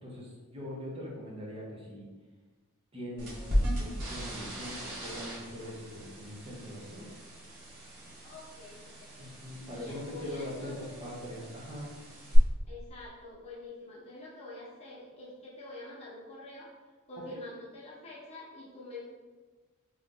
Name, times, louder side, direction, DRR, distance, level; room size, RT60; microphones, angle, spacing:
voice 1, 0.0-2.1 2.9-7.1 9.2-11.9, equal, 25° right, -4 dB, 0.7 m, -42 dB
sound 1, 3.2-12.4, equal, 90° right, 1.1 m, -38 dB
voice 2, 8.2-9.3 9.7-11.0 12.7-16.7 17.1-19.0, left 2 dB, 30° left, -6 dB, 1.0 m, -46 dB
3.0 x 2.5 x 3.7 m, 1.3 s
head